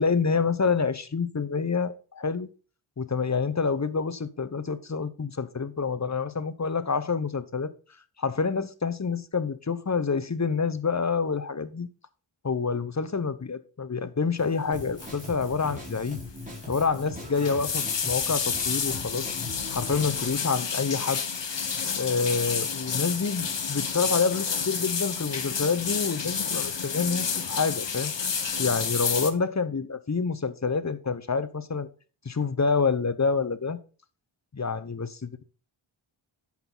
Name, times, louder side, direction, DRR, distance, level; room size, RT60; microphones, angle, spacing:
voice 1, 0.0-2.5 3.0-7.7 8.2-11.9 12.4-16.2 16.7-19.4 19.7-21.2 22.0-28.1 28.6-31.9 32.2-33.8 34.5-35.4, left 5 dB, 35° left, 0.8 m, -27 dB
Drum kit, 14.7-20.3, left 2 dB, 15° right, 4.1 m, -40 dB
sound 1, 15.0-15.2 15.5-15.8 16.1-16.2 17.1-29.3, left 6 dB, 60° left, 1.1 m, -30 dB
10.5 x 7.3 x 3.9 m
wide cardioid pair, 70°, 50 cm